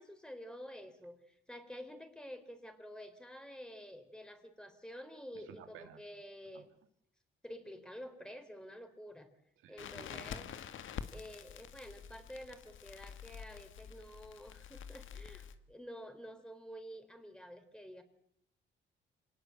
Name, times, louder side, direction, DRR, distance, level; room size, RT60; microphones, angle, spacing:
voice 1, 0.0-6.7 7.4-9.3 9.7-10.5 11.1-18.0, equal, 5° left, 7 dB, 4.2 m, -50 dB
voice 2, 5.6-6.0 6.5-6.6 9.6-10.3, right 9 dB, 90° right, 6 dB, 2.7 m, -55 dB
Crackle, 9.8-15.6, left 8 dB, 75° left, 1.7 m, -47 dB
26.0 x 18.5 x 8.0 m, 0.69 s
cardioid pair, 85°, 20 cm